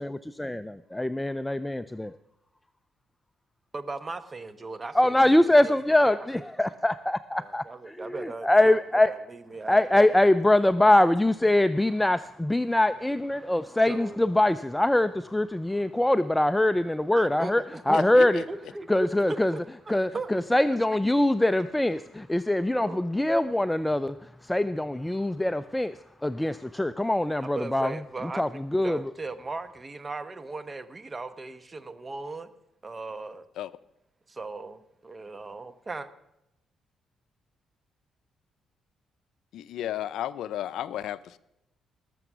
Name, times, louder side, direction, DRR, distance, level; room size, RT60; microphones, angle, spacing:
voice 1, 0.0-2.1 5.0-7.6 8.0-9.1 9.7-18.4 18.9-19.5 19.9-24.1 24.4-26.0 26.2-27.9 28.4-29.0, left 1 dB, 10° left, 0.4 m, -23 dB
voice 2, 3.7-5.2 5.4-6.5 7.4-10.2 13.9-14.3 17.1-20.3 20.7-20.8 22.8-23.0 27.4-32.5 32.8-33.5 34.3-36.1, right 3 dB, 25° right, 1.0 m, -38 dB
voice 3, 17.9-18.4 33.6-33.7 39.5-41.4, left 12 dB, 80° left, 0.5 m, -33 dB
19.5 x 7.0 x 6.1 m
cardioid pair, 90°, 0 cm